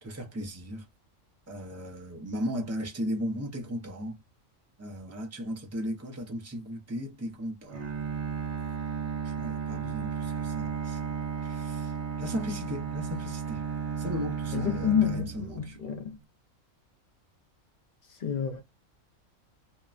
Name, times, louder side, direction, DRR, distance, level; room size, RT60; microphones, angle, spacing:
voice 1, 0.0-0.9 1.5-4.2 4.8-7.9 9.2-13.6 14.0-15.8, equal, 20° right, 0.4 m, -36 dB
Bowed string instrument, 7.7-15.9, right 6 dB, 60° right, 1.1 m, -34 dB
voice 2, 14.5-16.2 18.0-18.6, left 7 dB, 55° left, 0.5 m, -29 dB
2.8 x 2.2 x 2.4 m
omnidirectional pair, 1.4 m